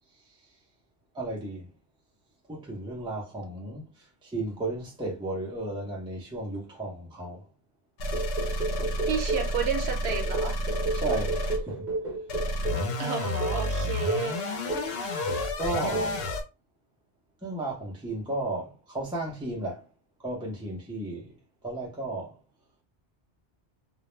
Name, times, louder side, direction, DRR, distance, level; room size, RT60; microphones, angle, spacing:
voice 1, 1.1-1.7 2.5-7.4 10.9-11.9 15.6-16.2 17.4-19.8 20.2-21.4 21.6-22.3, right 2 dB, 5° right, 0.5 m, -34 dB
sound 1, 8.0-11.6 12.3-16.4, left 1 dB, 70° left, 0.8 m, -30 dB
sound 2, 8.1-9.6 10.1-12.9 13.4-13.6 14.1-14.3 14.7-15.0 15.3-15.6 15.9-16.2, right 3 dB, 50° right, 0.8 m, -32 dB
voice 2, 9.1-10.6 13.0-14.5, right 7 dB, 85° right, 0.9 m, -31 dB
2.2 x 2.0 x 3.0 m
omnidirectional pair, 1.1 m